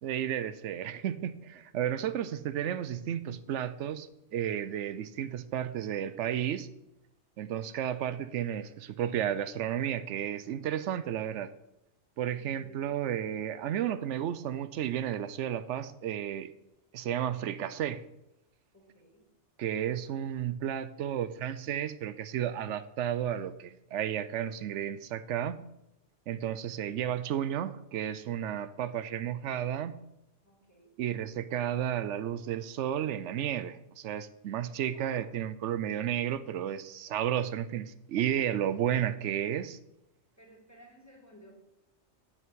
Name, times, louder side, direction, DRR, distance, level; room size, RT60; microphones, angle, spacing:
voice 1, 0.0-4.1 4.3-6.7 7.4-11.5 12.2-16.5 16.9-18.0 19.6-25.6 26.3-30.0 31.0-39.8, right 10 dB, 85° right, 14 dB, 0.9 m, -32 dB
voice 2, 12.2-12.9 18.7-19.3 30.4-30.9 34.9-35.2 40.4-41.5, equal, 15° left, -2 dB, 2.9 m, -56 dB
7.8 x 6.2 x 7.6 m, 0.85 s
omnidirectional pair, 1.2 m